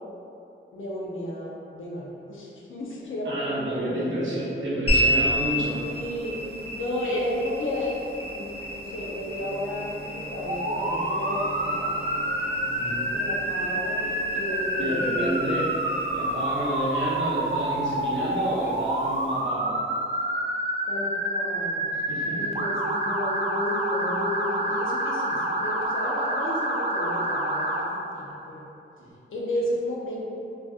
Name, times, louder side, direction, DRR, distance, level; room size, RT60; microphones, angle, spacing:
voice 1, 0.7-4.7 5.1-5.2 5.8-8.0 8.3-8.5 8.7-11.9 13.1-15.6 20.9-21.9 22.4-28.7 29.3-30.3, left 1 dB, 80° left, -4 dB, 0.7 m, -33 dB
voice 2, 3.2-5.8 12.6-13.0 14.8-15.7 16.0-19.8 21.9-22.5, right 1 dB, 70° right, -7 dB, 0.9 m, -30 dB
sound 1, 4.9-19.5, equal, 25° left, 1.5 m, -32 dB
Bowed string instrument, 9.1-13.9, right 2 dB, ahead, 1.3 m, -46 dB
Motor vehicle (road) / Siren, 10.5-27.8, right 1 dB, 30° right, 0.4 m, -28 dB
4.0 x 2.5 x 2.4 m, 2.7 s
wide cardioid pair, 105°, 20 cm